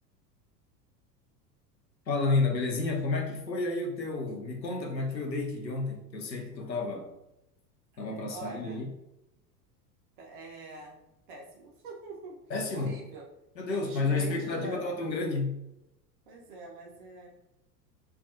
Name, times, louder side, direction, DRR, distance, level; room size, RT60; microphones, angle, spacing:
voice 1, 2.1-7.1 8.0-8.9 12.5-12.9 13.6-15.6, left 3 dB, 85° left, 1 dB, 0.6 m, -31 dB
voice 2, 7.9-8.8 10.2-11.0 11.3-12.4 12.7-13.3 13.7-14.8 16.3-17.3, right 3 dB, 35° right, -1 dB, 0.4 m, -44 dB
2.3 x 2.3 x 2.5 m, 0.88 s
figure-of-eight pair, 80°, 50 cm